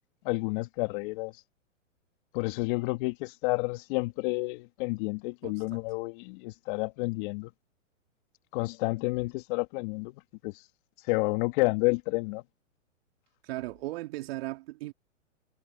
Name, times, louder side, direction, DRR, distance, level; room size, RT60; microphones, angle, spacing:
voice 1, 0.2-1.3 2.3-7.5 8.5-10.1 10.4-10.5 11.1-12.4, left 25 dB, 40° left, 2.3 m, -30 dB
voice 2, 5.4-5.8 13.4-14.9, right 19 dB, 50° right, 4.2 m, -37 dB
hypercardioid pair, 125°, 39 cm